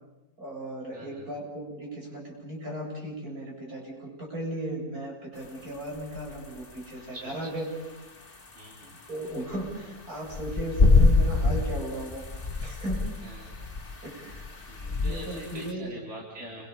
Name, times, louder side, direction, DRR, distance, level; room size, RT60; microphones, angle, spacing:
voice 1, 0.4-7.7 9.1-12.2 12.6-13.1 14.0-14.4 15.0-16.0, right 1 dB, 65° right, -2 dB, 8.5 m, -36 dB
voice 2, 0.9-1.3 7.1-7.3 8.6-8.9 13.2-13.5 14.7-16.7, right 1 dB, 45° right, -3 dB, 4.4 m, -43 dB
sound 1, 5.4-15.7, left 3 dB, 35° left, 2.2 m, -27 dB
29.5 x 24.5 x 7.0 m, 1.0 s
omnidirectional pair, 1.7 m